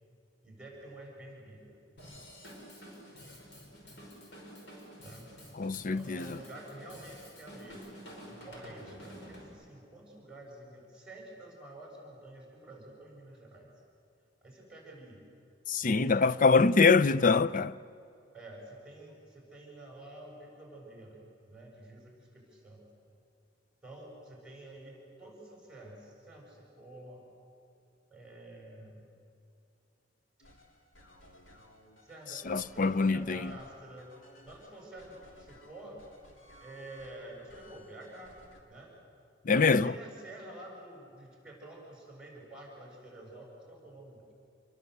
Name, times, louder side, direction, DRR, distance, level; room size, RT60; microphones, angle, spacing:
voice 1, 0.4-1.8 5.0-5.4 5.7-7.8 8.4-13.7 14.4-15.2 15.8-16.5 18.3-22.8 23.8-27.3 28.1-29.1 32.0-34.2 34.4-36.0 36.6-38.3 38.7-38.9 39.5-44.3, right 1 dB, 5° right, 7.1 m, -49 dB
Drum kit / Drum, 2.0-9.5, equal, 70° left, 6.0 m, -49 dB
voice 2, 5.6-6.4 15.7-17.7 32.5-33.5 39.5-39.9, left 4 dB, 45° left, 0.5 m, -24 dB
sound 1, 30.4-38.6, left 1 dB, 85° left, 3.3 m, -57 dB
28.5 x 22.0 x 8.1 m
head